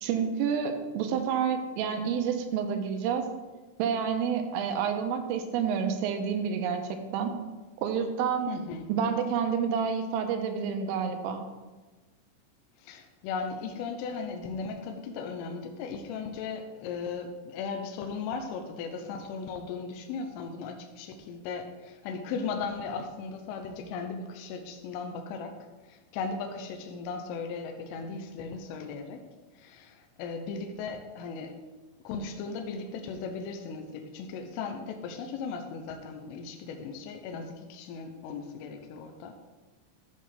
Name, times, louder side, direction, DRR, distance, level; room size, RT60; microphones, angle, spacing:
voice 1, 0.0-3.3 3.8-7.3 7.8-8.5 8.9-11.4, right 7 dB, 80° right, 5 dB, 3.4 m, -29 dB
voice 2, 8.5-8.9 12.8-25.5 25.9-29.2 29.6-31.7 32.0-39.3, left 5 dB, 80° left, 5 dB, 3.3 m, -37 dB
13.0 x 7.9 x 3.4 m, 1.2 s
omnidirectional pair, 5.9 m